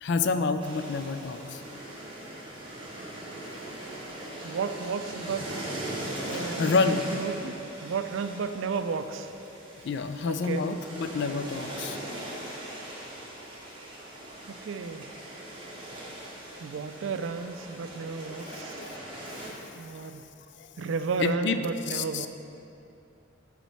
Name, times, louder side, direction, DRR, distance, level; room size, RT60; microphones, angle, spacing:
voice 1, 0.0-1.6 3.4-3.6 4.2-4.4 6.3-7.1 9.8-12.0 18.3-18.9 20.0-20.1 20.6-20.7 21.2-22.3, left 4 dB, 60° left, 9 dB, 0.4 m, -29 dB
sound 1, 0.6-19.5, right 1 dB, 25° right, 1.1 m, -40 dB
voice 2, 4.4-5.5 6.2-9.3 10.2-10.7 14.5-15.1 16.6-18.8 19.8-20.2 20.8-22.3, right 5 dB, 75° right, 9 dB, 0.4 m, -33 dB
7.2 x 4.2 x 5.6 m, 2.7 s
head